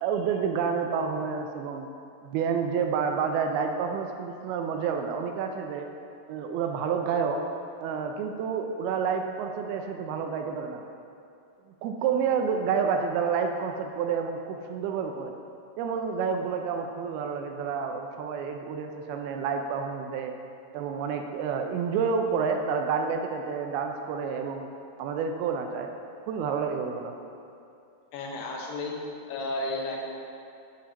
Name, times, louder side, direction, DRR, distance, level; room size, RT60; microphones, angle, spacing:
voice 1, 0.0-1.9 2.2-5.9 6.3-7.4 7.8-10.8 11.8-15.3 15.8-20.3 20.7-24.7 25.0-25.9 26.3-27.1, right 6 dB, 80° right, 4 dB, 2.4 m, -29 dB
voice 2, 28.1-28.9 29.3-30.1, left 2 dB, 90° left, -1 dB, 3.1 m, -32 dB
9.5 x 4.3 x 5.1 m, 2.6 s
omnidirectional pair, 4.6 m